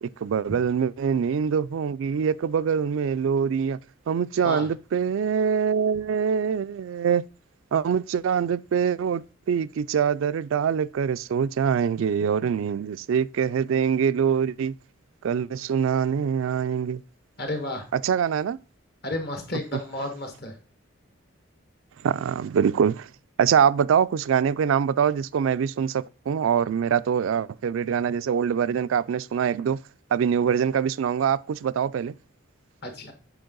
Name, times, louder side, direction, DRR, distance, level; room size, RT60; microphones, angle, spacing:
voice 1, 0.0-3.8 4.1-7.2 7.7-14.8 15.2-17.0 17.9-18.6 22.0-23.1 23.4-29.8 30.1-32.1, right 7 dB, 75° right, 0.3 m, -24 dB
voice 2, 17.4-17.8 19.0-20.6 32.8-33.1, left 1 dB, 50° left, 1.5 m, -32 dB
7.8 x 4.6 x 3.8 m
head